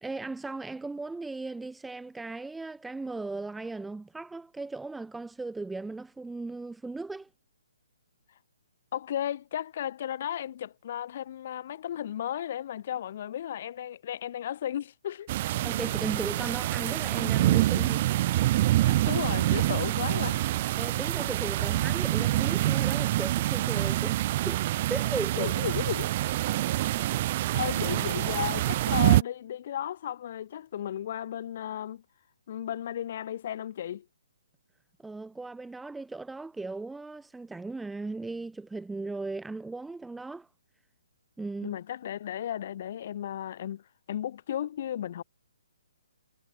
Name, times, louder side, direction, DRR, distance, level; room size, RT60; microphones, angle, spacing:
voice 1, 0.0-7.3 15.6-18.1 20.8-24.6 24.9-25.6 35.0-40.5 41.4-41.8, right 3 dB, 5° right, 0.8 m, -37 dB
voice 2, 8.9-15.3 18.8-20.4 25.4-26.1 27.5-32.0 32.5-34.1 41.6-43.8 44.1-45.2, left 10 dB, 45° left, 2.2 m, -34 dB
sound 1, 15.3-29.2, right 15 dB, 35° right, 0.6 m, -26 dB
hypercardioid pair, 155°, 0 cm